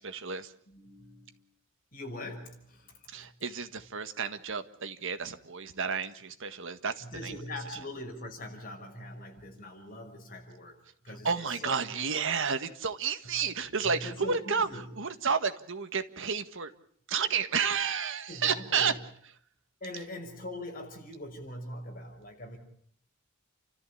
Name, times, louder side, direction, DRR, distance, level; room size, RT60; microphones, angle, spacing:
voice 1, 0.0-0.5 3.1-7.3 11.2-16.7 17.1-18.9, right 6 dB, 65° right, 9 dB, 1.7 m, -31 dB
voice 2, 0.7-1.4 1.9-3.3 7.0-10.8 11.0-11.9 13.2-13.3 13.8-14.9 18.3-19.0 19.8-22.6, left 1 dB, 45° left, 3 dB, 5.9 m, -42 dB
30.0 x 14.0 x 8.6 m, 0.66 s
head